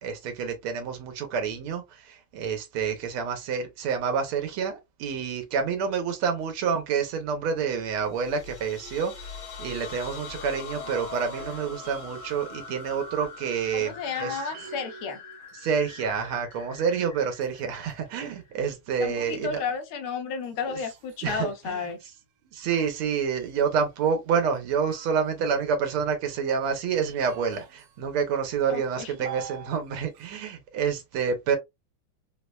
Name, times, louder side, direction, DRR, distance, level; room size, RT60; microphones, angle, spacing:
voice 1, 0.0-14.4 15.6-19.6 20.7-20.8 21.2-21.8 22.5-31.6, right 6 dB, 85° right, 1.7 m, -28 dB
sound 1, 8.0-18.6, left 4 dB, 60° left, 1.4 m, -43 dB
sound 2, 10.7-13.5 13.7-16.8 17.3-22.0 22.7-25.7 26.4-28.0 28.3-29.8 30.0-30.4, right 7 dB, 70° right, 1.3 m, -46 dB
voice 2, 13.7-15.2 19.0-22.0 28.7-29.1, left 6 dB, 80° left, 1.6 m, -32 dB
4.8 x 2.1 x 2.3 m
omnidirectional pair, 2.3 m